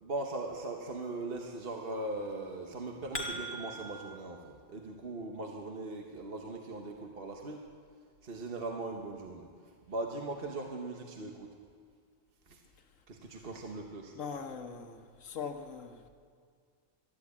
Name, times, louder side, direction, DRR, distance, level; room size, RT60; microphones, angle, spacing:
voice 1, 0.0-7.6 8.2-9.5 9.9-11.5 12.5-12.6 13.1-14.1, right 2 dB, 50° right, 1 dB, 1.3 m, -39 dB
sound 1, 2.7-4.2, right 1 dB, 10° left, 1.8 m, -40 dB
voice 2, 14.1-16.0, left 6 dB, 80° left, 6 dB, 1.4 m, -41 dB
13.0 x 11.0 x 8.5 m, 2.1 s
omnidirectional pair, 1.3 m